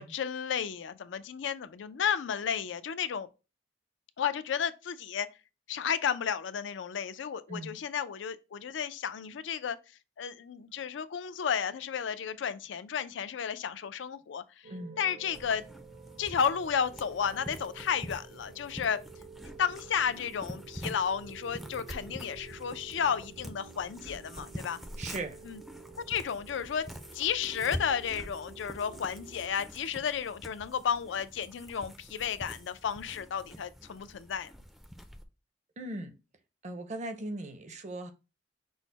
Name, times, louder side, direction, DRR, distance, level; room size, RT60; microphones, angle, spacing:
voice 1, 0.0-3.3 4.2-5.3 5.7-9.8 10.2-14.7 15.0-15.7 16.2-19.0 19.6-24.8 25.4-25.6 26.1-26.9 27.1-34.5, left 7 dB, 80° left, 0.4 m, -32 dB
sound 1, 14.6-29.5, right 6 dB, 80° right, 1.4 m, -51 dB
sound 2, 15.3-35.2, equal, ahead, 0.4 m, -46 dB
voice 2, 25.0-25.4 35.8-36.1 36.6-38.1, right 2 dB, 40° right, 0.7 m, -38 dB
6.2 x 2.1 x 4.0 m
head